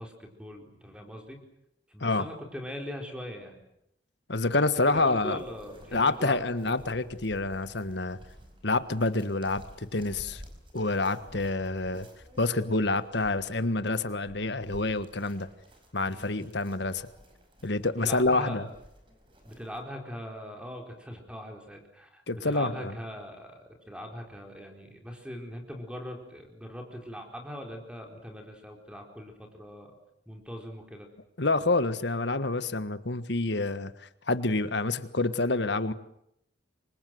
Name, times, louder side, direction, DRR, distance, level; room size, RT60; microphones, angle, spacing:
voice 1, 0.0-1.4 1.9-3.6 4.8-6.4 8.4-8.5 16.1-16.3 18.0-18.6 19.4-29.9 30.3-31.1, equal, 5° right, 2 dB, 4.3 m, -41 dB
voice 2, 4.3-5.4 5.9-8.2 8.6-10.4 10.7-12.1 12.4-15.5 15.9-17.1 17.6-18.7 22.3-22.9 31.4-33.9 34.3-35.9, left 2 dB, 65° left, 12 dB, 1.5 m, -27 dB
sound 1, 4.9-19.8, equal, 25° right, 4.9 m, -52 dB
28.5 x 24.5 x 7.8 m, 0.78 s
head